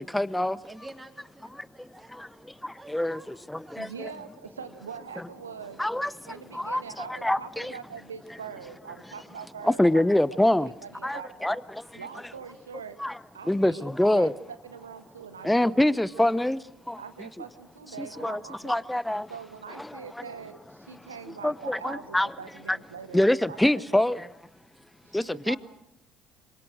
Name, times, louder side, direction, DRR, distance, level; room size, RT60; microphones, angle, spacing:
voice 1, 0.0-0.6 1.5-1.9 2.2-4.1 5.8-6.8 7.1-7.7 9.6-10.7 11.0-12.0 13.0-13.2 13.4-14.3 15.4-16.6 16.9-17.0 18.0-19.3 19.8-20.0 21.4-22.3 22.7-22.8 23.1-24.3 25.1-25.6, left 1 dB, 5° left, 0.9 m, -25 dB
voice 2, 0.6-2.5 2.7-3.9 24.6-24.7, right 1 dB, 10° right, 4.3 m, -49 dB
voice 3, 3.8-5.8 6.3-10.0 10.6-11.6 11.9-13.0 13.3-16.2 17.0-18.8 19.3-24.0 25.0-25.6, right 6 dB, 80° right, 1.6 m, -43 dB
27.0 x 24.5 x 6.4 m
figure-of-eight pair, 55°, 0 cm